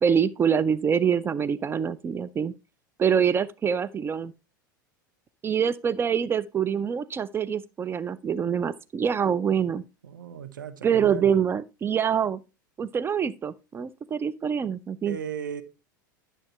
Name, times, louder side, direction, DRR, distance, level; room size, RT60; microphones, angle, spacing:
voice 1, 0.0-2.5 3.0-4.3 5.4-9.8 10.8-12.4 12.8-15.2, right 7 dB, 20° right, 0.4 m, -25 dB
voice 2, 10.0-11.4 15.0-15.6, right 8 dB, 70° right, 1.1 m, -36 dB
11.5 x 6.4 x 3.0 m
figure-of-eight pair, 80°, 11 cm